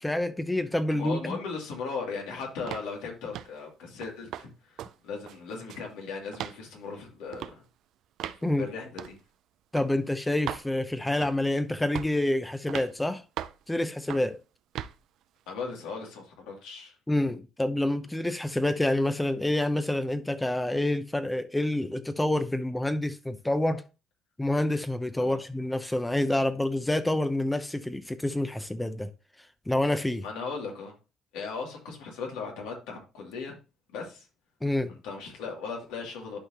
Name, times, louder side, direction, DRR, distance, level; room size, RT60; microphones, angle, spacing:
voice 1, 0.0-1.4 8.4-8.7 9.7-13.2 13.7-14.4 17.1-23.8 24.4-29.1 29.7-30.2 34.6-35.0, left 1 dB, 10° left, 0.6 m, -27 dB
voice 2, 0.9-7.5 8.6-9.2 15.5-17.0 25.2-25.4 30.2-30.9 31.3-33.6 33.9-34.3 34.9-36.4, left 5 dB, 90° left, 2.6 m, -37 dB
sound 1, 2.7-2.9 3.3-3.6 4.0-4.5 4.8-4.9 5.3-5.9 6.3-6.6 7.3-7.6 8.2-8.4 9.0-9.2 9.8-9.9 10.5-10.7 11.2-11.5 12.0-12.2 12.7-12.9 13.4-13.6 14.1-14.3 14.8-15.0, right 11 dB, 70° right, 0.5 m, -37 dB
11.5 x 4.3 x 2.9 m
cardioid pair, 100°, 0 cm